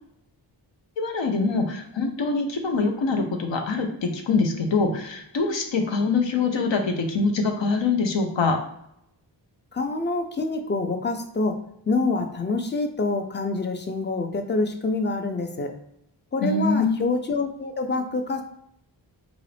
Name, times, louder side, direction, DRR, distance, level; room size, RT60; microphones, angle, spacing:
voice 1, 1.0-8.6 16.4-17.1, left 4 dB, 70° left, 4 dB, 0.7 m, -24 dB
voice 2, 9.7-11.6 11.9-15.8 16.3-18.4, left 3 dB, 25° left, 6 dB, 0.4 m, -26 dB
3.9 x 2.4 x 3.3 m, 0.76 s
wide cardioid pair, 80°, 46 cm